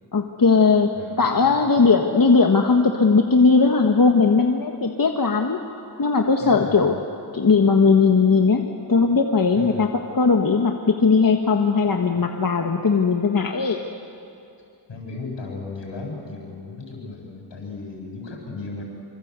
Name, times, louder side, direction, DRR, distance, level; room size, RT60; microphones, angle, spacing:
voice 1, 0.1-0.9 1.2-5.6 6.0-6.9 7.3-13.8, left 4 dB, 50° left, 3 dB, 1.5 m, -18 dB
voice 2, 1.0-1.9 6.4-6.9 9.5-9.8 14.9-18.8, left 3 dB, 80° left, 0 dB, 7.7 m, -36 dB
26.0 x 26.0 x 8.2 m, 2.6 s
wide cardioid pair, 95°, 43 cm